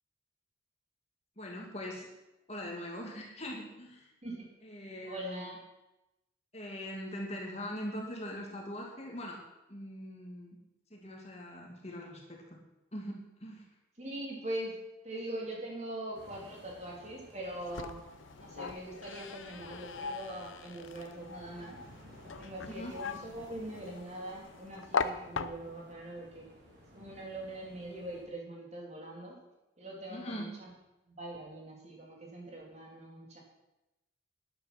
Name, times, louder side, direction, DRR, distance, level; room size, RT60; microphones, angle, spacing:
voice 1, 1.4-2.1 2.5-4.1 4.6-5.5 6.5-9.4 9.7-10.6 10.9-12.6 12.9-13.6 22.7-23.0 30.1-30.5, equal, 30° left, 0 dB, 2.4 m, -42 dB
voice 2, 4.2-4.5 5.0-5.6 14.0-14.8 15.0-18.0 18.4-21.8 22.4-26.5 26.9-29.4 29.8-30.7 31.1-33.4, right 1 dB, 35° right, -1 dB, 3.2 m, -42 dB
sound 1, 16.1-28.2, equal, 55° right, 3.1 m, -57 dB
sound 2, 17.4-25.9, left 5 dB, 75° left, 0.7 m, -40 dB
12.5 x 10.0 x 6.0 m, 0.94 s
head